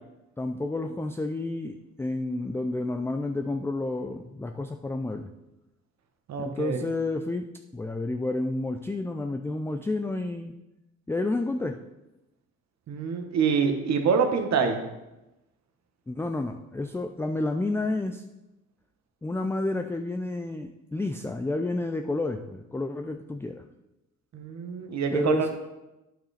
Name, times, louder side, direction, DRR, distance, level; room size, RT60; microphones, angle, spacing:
voice 1, 0.4-5.3 6.4-7.5 7.7-10.5 11.1-11.8 16.1-18.2 19.2-23.6 25.1-25.5, left 2 dB, 10° left, 6 dB, 0.4 m, -30 dB
voice 2, 6.3-6.8 12.9-14.8 24.3-25.5, right 6 dB, 60° right, 5 dB, 1.3 m, -26 dB
8.9 x 5.9 x 4.2 m, 0.96 s
cardioid pair, 90°, 30 cm